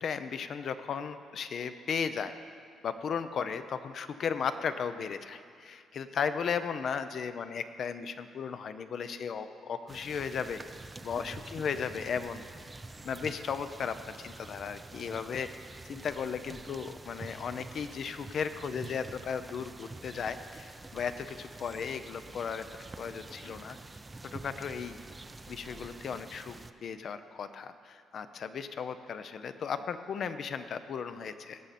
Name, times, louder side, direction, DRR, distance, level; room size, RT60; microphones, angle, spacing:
voice 1, 0.0-2.3 2.8-10.6 11.0-12.5 13.0-15.5 15.9-22.6 23.0-23.8 24.3-25.0 25.5-26.5 26.8-31.6, left 6 dB, 60° left, 11 dB, 0.5 m, -35 dB
sound 1, 9.9-26.7, right 2 dB, 20° right, 0.4 m, -47 dB
17.5 x 6.7 x 4.2 m, 2.3 s
cardioid pair, 90°, 0 cm